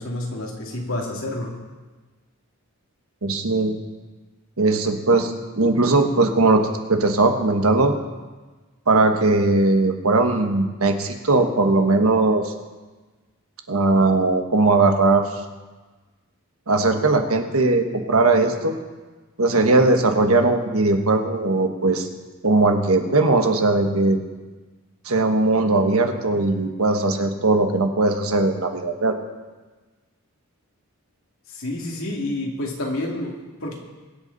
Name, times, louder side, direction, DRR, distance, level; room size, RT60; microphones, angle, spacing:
voice 1, 0.0-1.6 31.5-33.8, left 1 dB, 65° left, -1 dB, 2.6 m, -29 dB
voice 2, 3.2-3.7 4.6-6.6 6.9-7.9 8.9-12.5 13.7-15.2 16.7-18.7 19.4-22.1 22.4-24.2 25.0-29.1, right 2 dB, 75° right, 5 dB, 1.3 m, -19 dB
23.0 x 8.1 x 4.1 m, 1.3 s
head